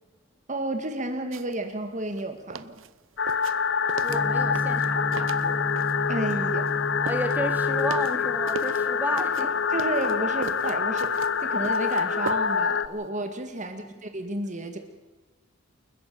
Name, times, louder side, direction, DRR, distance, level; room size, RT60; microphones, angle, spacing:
voice 1, 0.5-2.8 6.1-6.7 9.7-14.8, right 2 dB, 35° right, 6 dB, 1.8 m, -32 dB
sound 1, 1.3-1.6 1.9-6.0 6.3-8.9 9.2-12.7 13.0-13.1, right 4 dB, 65° right, 0.9 m, -39 dB
sound 2, 3.2-12.9, left 6 dB, 60° left, 0.8 m, -26 dB
voice 2, 4.0-5.7 7.0-9.5 13.6-14.0, right 1 dB, 10° right, 5 dB, 2.3 m, -33 dB
Gong, 4.1-12.1, equal, 20° left, 2.2 m, -35 dB
29.5 x 14.0 x 6.8 m, 1.3 s
head